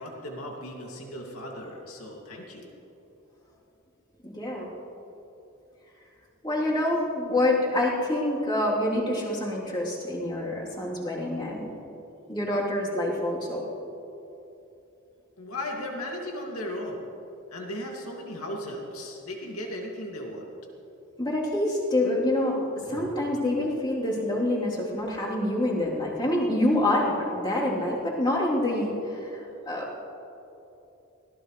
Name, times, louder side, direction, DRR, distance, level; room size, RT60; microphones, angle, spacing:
voice 1, 0.0-2.7 8.9-9.0 15.4-17.0 17.5-20.5, left 1 dB, 80° left, 0 dB, 2.4 m, -36 dB
voice 2, 4.2-4.7 6.4-11.7 12.3-13.6 21.2-30.0, left 1 dB, 20° left, -6 dB, 3.4 m, -27 dB
23.5 x 18.0 x 3.3 m, 2.9 s
head